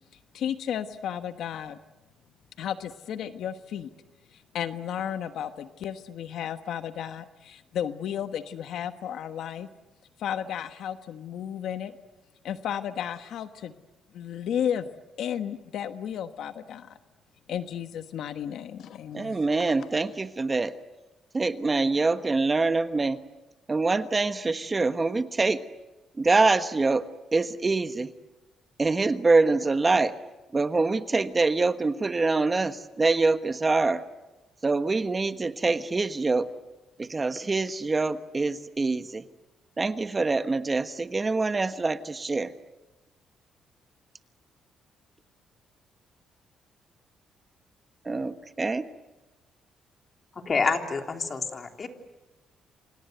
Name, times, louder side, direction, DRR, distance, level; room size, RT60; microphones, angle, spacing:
voice 1, 0.1-1.8 2.6-3.9 4.3-9.7 10.2-12.0 12.4-13.8 14.1-14.9 15.2-17.0 17.5-19.5 19.8-19.9, left 9 dB, 75° left, 10 dB, 1.2 m, -33 dB
voice 2, 19.1-20.7 21.3-23.2 23.7-25.6 26.2-27.0 27.3-28.1 28.8-30.1 30.5-34.0 34.6-36.5 37.0-39.2 39.8-42.5 48.0-48.9, right 3 dB, 25° right, 11 dB, 1.2 m, -25 dB
voice 3, 50.4-51.9, left 4 dB, 40° left, 5 dB, 3.4 m, -27 dB
28.0 x 26.5 x 7.9 m, 1.1 s
cardioid pair, 90°, 0 cm